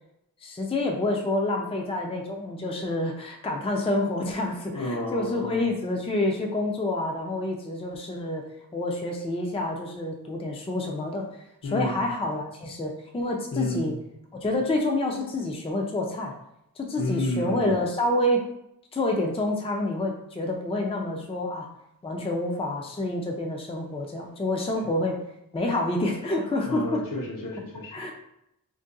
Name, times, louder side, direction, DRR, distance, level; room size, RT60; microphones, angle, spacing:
voice 1, 0.4-8.4 8.7-11.3 11.7-13.9 14.4-16.3 16.8-18.4 18.9-21.7 22.0-25.2 25.5-27.0 27.9-28.1, left 1 dB, 15° left, 1 dB, 0.4 m, -28 dB
voice 2, 4.7-5.7 11.6-11.9 13.5-13.9 17.0-17.8 26.6-28.0, left 2 dB, 65° left, -1 dB, 0.8 m, -31 dB
2.6 x 2.2 x 3.6 m, 0.82 s
wide cardioid pair, 45°, 36 cm